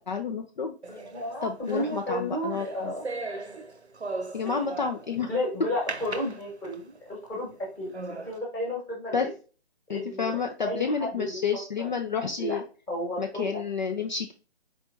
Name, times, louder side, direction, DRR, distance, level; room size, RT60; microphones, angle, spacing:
voice 1, 0.1-0.7 1.4-2.9 4.3-5.3 9.1-9.3 9.9-12.6 13.2-14.3, left 6 dB, 45° left, 4 dB, 0.5 m, -30 dB
sound 1, 0.8-5.2 5.9-7.0 7.5-7.6 7.9-8.4, right 3 dB, 90° right, 0.8 m, -38 dB
voice 2, 0.9-3.0 5.3-7.5 7.8-9.3 9.9-10.4 10.6-11.4 11.8-11.9 12.4-12.5 12.9-13.6, equal, 5° left, -4 dB, 1.2 m, -32 dB
4.5 x 3.3 x 2.6 m, 0.35 s
figure-of-eight pair, 145°, 32 cm